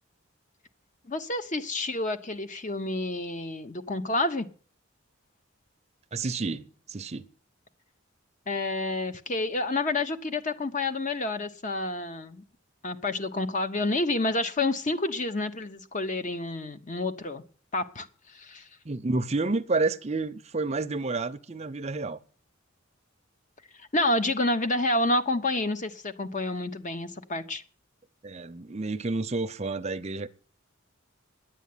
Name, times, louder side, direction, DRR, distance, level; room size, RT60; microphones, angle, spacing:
voice 1, 1.0-4.5 8.5-12.4 12.8-17.4 17.7-18.7 23.8-27.6, left 2 dB, 40° left, 1.0 m, -29 dB
voice 2, 6.1-7.3 18.8-22.2 28.2-30.3, right 3 dB, 30° right, 0.6 m, -30 dB
10.5 x 8.2 x 9.5 m
head